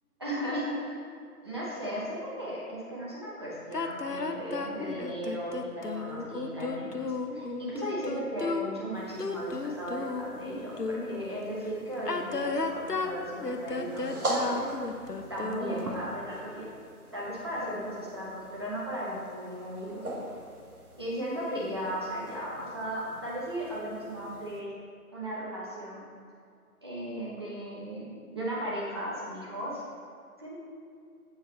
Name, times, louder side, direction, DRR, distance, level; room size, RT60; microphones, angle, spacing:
voice 1, 0.2-0.9 1.4-7.0 7.3-14.6 15.3-16.7 17.1-20.0 21.0-24.7 25.1-26.0 26.8-29.8 30.4-30.6, equal, 15° right, -7 dB, 1.1 m, -36 dB
sound 1, 3.7-11.2 11.9-16.0, left 4 dB, 90° left, 0.9 m, -34 dB
sound 2, 8.9-24.6, right 1 dB, 65° right, 1.5 m, -42 dB
8.9 x 8.2 x 3.4 m, 2.4 s
figure-of-eight pair, 160°, 46 cm